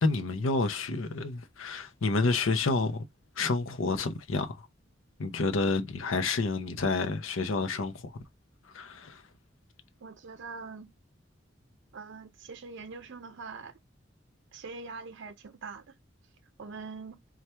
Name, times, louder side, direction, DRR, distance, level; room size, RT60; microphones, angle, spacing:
voice 1, 0.0-3.1 3.4-4.6 5.2-8.1 8.7-9.2, left 3 dB, 85° left, 0.7 m, -29 dB
voice 2, 10.0-10.9 11.9-13.7 14.5-15.9 16.6-17.2, right 4 dB, 65° right, 0.5 m, -43 dB
4.3 x 2.4 x 3.2 m
head